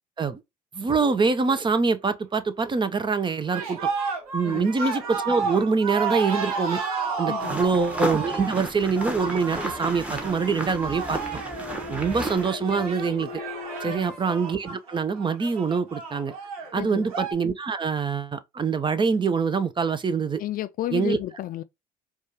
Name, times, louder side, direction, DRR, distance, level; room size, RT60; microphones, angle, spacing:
voice 1, 0.7-3.9 4.3-6.8 7.2-11.2 11.9-13.3 13.8-16.3 16.7-20.4 20.9-21.2, right 5 dB, 25° right, 0.6 m, -25 dB
sound 1, 2.4-14.0, left 3 dB, 50° right, 2.0 m, -44 dB
sound 2, 3.5-17.3, right 4 dB, 90° right, 1.0 m, -32 dB
voice 2, 4.4-4.7 7.3-7.6 13.8-14.2 16.8-17.1 20.4-21.6, left 13 dB, 50° left, 0.4 m, -32 dB
sound 3, 7.4-12.5, right 1 dB, 5° right, 1.2 m, -33 dB
4.6 x 2.4 x 2.8 m
hypercardioid pair, 65°, 18 cm